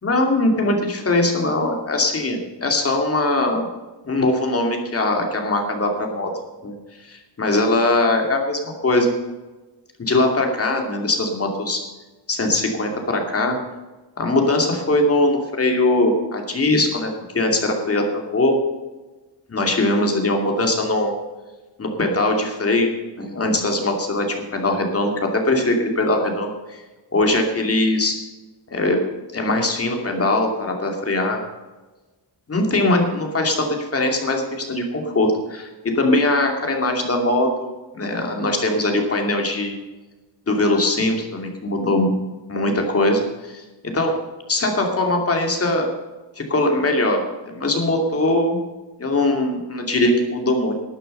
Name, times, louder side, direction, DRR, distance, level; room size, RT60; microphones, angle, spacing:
voice 1, 0.0-3.7 4.1-6.3 6.6-6.7 7.0-9.1 10.0-11.8 12.3-13.6 14.2-18.6 19.5-21.2 21.8-22.9 23.2-26.8 27.1-28.1 28.7-29.0 29.3-31.4 32.5-39.8 40.5-42.1 42.5-43.6 43.9-44.1 44.5-45.9 46.4-48.6 49.0-50.7, left 2 dB, 30° left, 3 dB, 2.6 m, -21 dB
12.5 x 9.1 x 6.6 m, 1.2 s
wide cardioid pair, 135°, 44 cm